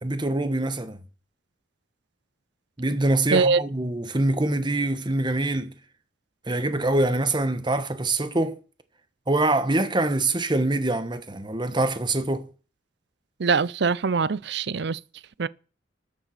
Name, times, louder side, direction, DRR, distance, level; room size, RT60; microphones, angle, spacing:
voice 1, 0.0-1.0 2.8-5.7 6.5-8.6 9.3-12.5, right 2 dB, 25° right, 1.2 m, -24 dB
voice 2, 3.3-3.6 13.4-15.0 15.4-15.5, right 4 dB, 60° right, 0.5 m, -22 dB
13.0 x 7.4 x 5.8 m
head